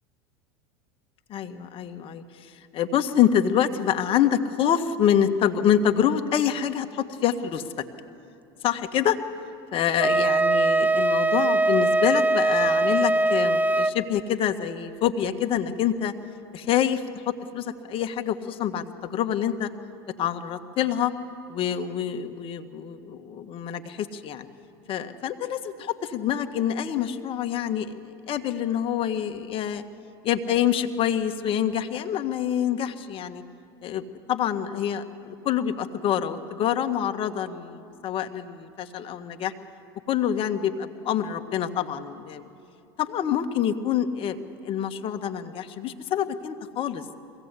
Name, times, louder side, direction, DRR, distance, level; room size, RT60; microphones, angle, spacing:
voice 1, 1.3-7.6 8.6-9.2 9.7-16.1 16.5-19.7 20.2-21.1 21.5-24.5 24.9-27.9 28.3-29.8 30.2-33.4 33.8-39.5 40.1-42.5 43.0-47.0, left 9 dB, 45° left, 7 dB, 1.3 m, -26 dB
Wind instrument woodwind instrument, 10.0-14.0, right 2 dB, 10° right, 0.5 m, -21 dB
22.0 x 16.5 x 8.2 m, 2.5 s
hypercardioid pair, 90°, 13 cm